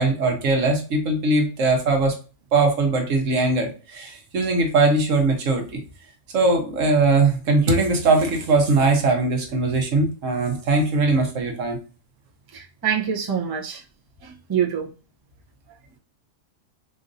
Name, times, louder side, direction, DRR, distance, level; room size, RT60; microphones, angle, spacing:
voice 1, 0.0-2.1 2.5-5.8 6.3-11.8, right 3 dB, 75° right, 3 dB, 1.3 m, -20 dB
voice 2, 12.5-13.8 14.2-14.9, right 8 dB, 25° right, -2 dB, 0.5 m, -25 dB
4.4 x 2.6 x 2.5 m, 0.34 s
omnidirectional pair, 1.3 m